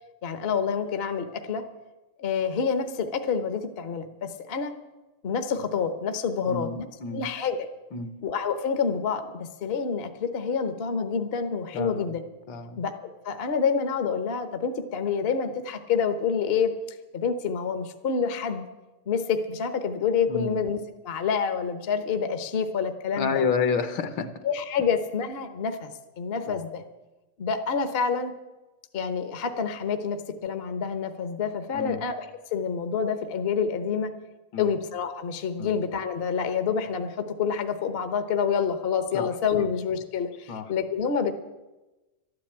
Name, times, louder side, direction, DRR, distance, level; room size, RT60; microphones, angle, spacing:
voice 1, 0.2-1.6 2.2-4.7 5.2-6.7 7.1-7.7 8.2-12.2 12.8-16.7 17.1-18.6 19.1-20.8 21.0-23.4 24.4-25.9 26.2-26.8 27.4-28.3 28.9-32.3 32.5-34.1 34.6-41.3, left 6 dB, 45° left, 8 dB, 0.8 m, -27 dB
voice 2, 6.4-7.3 7.9-8.1 11.7-12.1 12.5-12.8 20.3-20.6 23.1-24.3 26.5-26.6 31.7-32.0 34.5-34.7 35.6-35.8 39.1-39.3 39.6-39.7 40.5-40.7, left 5 dB, 65° left, 10 dB, 1.6 m, -30 dB
12.5 x 10.5 x 8.6 m, 1.1 s
omnidirectional pair, 2.3 m